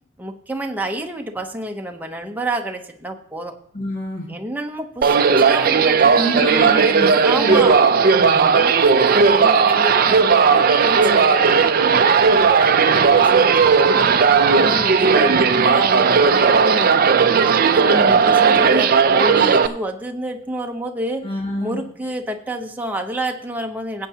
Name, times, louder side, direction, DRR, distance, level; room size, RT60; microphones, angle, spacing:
voice 1, 0.2-3.5 4.3-6.5 6.8-7.0 7.2-7.8 8.5-17.2 17.7-21.2 21.6-24.1, right 1 dB, 10° right, 3 dB, 0.8 m, -29 dB
voice 2, 3.7-4.3 6.1-7.1 7.4-7.9 8.2-8.4 14.7-14.8 15.2-15.4 17.9-18.2 21.2-21.8, equal, 45° left, -3 dB, 2.0 m, -27 dB
sound 1, 5.0-19.7, right 5 dB, 45° right, 0.5 m, -15 dB
18.0 x 8.3 x 2.8 m, 0.66 s
head